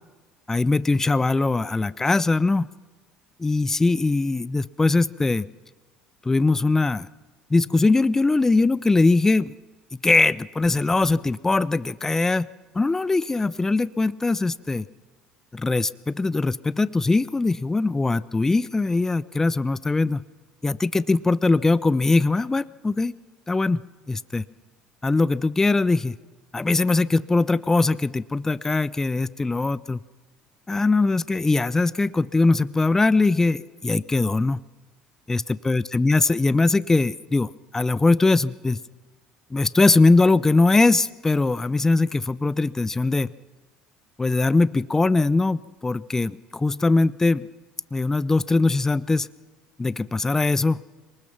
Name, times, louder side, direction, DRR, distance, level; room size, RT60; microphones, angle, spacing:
voice 1, 0.5-2.7 3.4-5.5 6.2-7.1 7.5-9.5 10.0-12.5 12.7-14.9 15.5-20.3 20.6-23.1 23.5-24.4 25.0-26.2 26.5-30.0 30.7-34.6 35.3-38.8 39.5-43.3 44.2-47.5 47.9-49.3 49.8-50.8, left 3 dB, 15° left, 18 dB, 0.6 m, -21 dB
23.0 x 20.0 x 5.9 m, 1.2 s
hypercardioid pair, 70°, 3 cm